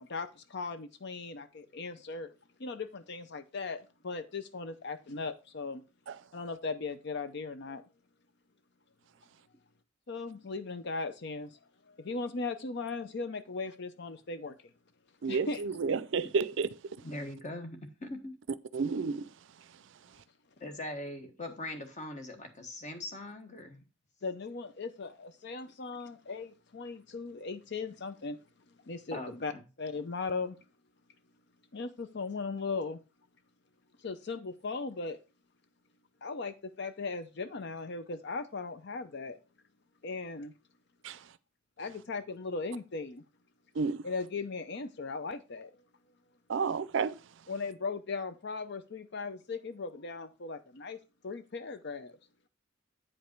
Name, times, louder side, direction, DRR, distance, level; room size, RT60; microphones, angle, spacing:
voice 1, 0.0-2.3 2.6-5.8 6.3-7.8 10.1-11.6 11.9-14.6 15.3-15.6 24.2-28.4 28.9-29.5 29.8-30.6 31.7-33.0 34.0-35.2 36.2-39.4 40.0-40.5 41.8-43.2 44.0-45.8 47.5-51.0 51.2-52.2, left 4 dB, 55° left, 0.6 m, -38 dB
voice 2, 15.2-16.7 18.7-19.2 41.0-41.2 43.8-44.0 46.5-47.2, right 5 dB, 60° right, 0.4 m, -30 dB
voice 3, 17.0-18.3 20.6-23.8 29.1-29.6, left 1 dB, 35° left, 1.4 m, -41 dB
8.6 x 5.3 x 4.5 m
head